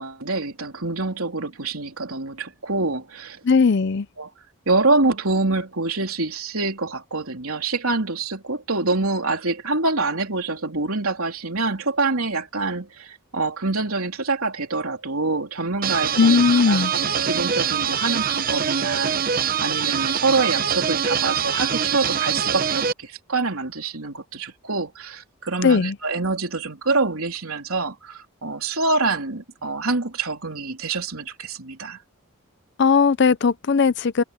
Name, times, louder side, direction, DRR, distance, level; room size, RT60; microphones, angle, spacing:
voice 1, 0.0-3.4 4.2-4.3 4.7-32.0, right 3 dB, 80° right, 3.4 m, -26 dB
voice 2, 3.4-4.1 16.2-16.9 25.6-25.9 32.8-34.2, left 5 dB, 55° left, 0.5 m, -18 dB
sound 1, 15.8-22.9, right 7 dB, 40° right, 0.7 m, -24 dB
head